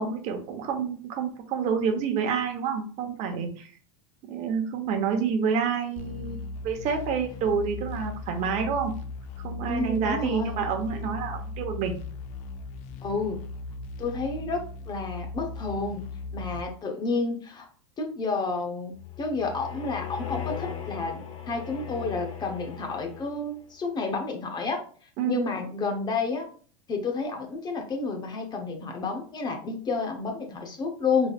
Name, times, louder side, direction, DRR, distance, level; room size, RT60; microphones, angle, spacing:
voice 1, 0.0-3.7 4.3-8.9 9.4-11.9 25.2-25.4, right 6 dB, 45° right, 4 dB, 1.0 m, -28 dB
sound 1, 6.0-16.6, left 3 dB, 50° left, 0.5 m, -38 dB
voice 2, 9.7-10.6 13.0-13.4 14.0-16.1 16.3-17.7 18.0-24.8 25.3-26.5 26.9-31.3, left 3 dB, 25° left, 4 dB, 0.9 m, -30 dB
sound 2, 18.9-23.6, left 9 dB, 80° left, 1.0 m, -38 dB
4.0 x 3.2 x 2.4 m, 0.43 s
hypercardioid pair, 110°, 16 cm